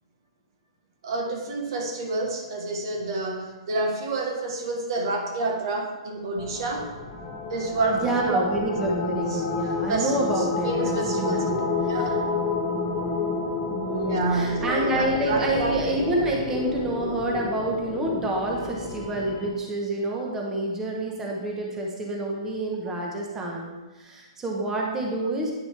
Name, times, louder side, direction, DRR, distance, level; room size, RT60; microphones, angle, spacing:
voice 1, 1.0-6.9 7.5-8.4 9.3-9.4 9.9-12.2 13.9-15.8, right 2 dB, 55° right, 3 dB, 1.2 m, -29 dB
sound 1, 6.4-19.5, left 4 dB, 30° left, 1.4 m, -30 dB
voice 2, 7.9-11.5 12.0-12.2 13.7-25.5, right 2 dB, 15° right, -1 dB, 1.0 m, -28 dB
9.4 x 6.0 x 3.4 m, 1.2 s
hypercardioid pair, 150°, 3 cm